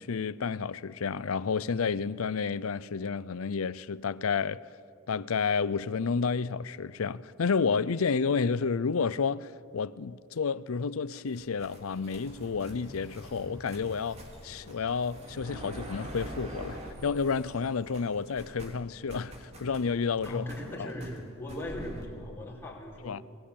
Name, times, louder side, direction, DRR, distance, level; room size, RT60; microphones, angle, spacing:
voice 1, 0.0-4.6 5.1-20.4 20.8-20.9 23.0-23.2, left 5 dB, 85° left, 0.6 m, -30 dB
sound 1, 11.3-17.7 17.9-22.1, right 1 dB, 30° right, 3.0 m, -46 dB
sound 2, 12.3-18.2, equal, 65° right, 5.8 m, -51 dB
voice 2, 20.2-23.2, left 1 dB, 10° left, 4.9 m, -39 dB
22.0 x 20.0 x 8.7 m
head